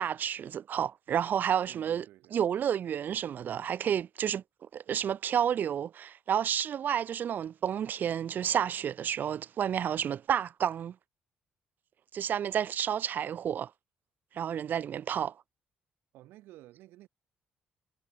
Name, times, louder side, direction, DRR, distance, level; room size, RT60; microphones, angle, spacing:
voice 1, 0.0-2.0 2.3-4.4 4.7-11.0 12.1-13.7 14.3-15.4, right 9 dB, 60° right, 1.1 m, -30 dB
voice 2, 1.7-2.5 16.1-17.1, right 16 dB, 80° right, 3.1 m, -53 dB
supercardioid pair, 60°, 4 cm